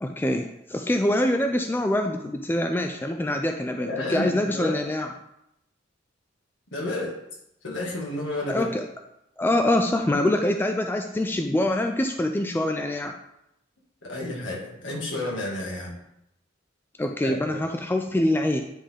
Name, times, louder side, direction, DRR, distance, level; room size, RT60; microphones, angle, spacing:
voice 1, 0.0-5.1 8.5-8.8 9.4-13.1 17.0-18.6, left 1 dB, 10° left, 5 dB, 0.3 m, -25 dB
voice 2, 3.8-4.8 6.7-7.2 7.6-8.7 14.0-16.0 17.2-17.6, left 2 dB, 65° left, -3 dB, 1.8 m, -31 dB
9.9 x 3.7 x 3.6 m, 0.83 s
head